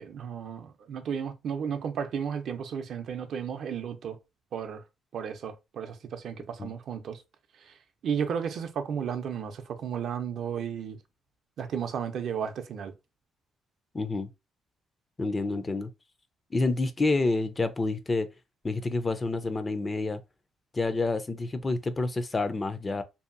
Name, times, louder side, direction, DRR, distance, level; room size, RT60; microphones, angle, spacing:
voice 1, 0.0-4.2 4.5-4.8 5.1-7.2 7.6-11.0 11.6-12.9, right 7 dB, 65° right, 0.5 m, -33 dB
voice 2, 13.9-14.3 15.2-15.9 16.5-18.3 18.6-20.2 20.7-23.0, left 3 dB, 25° left, 0.4 m, -28 dB
2.7 x 2.5 x 2.5 m
cardioid pair, 90°, 0 cm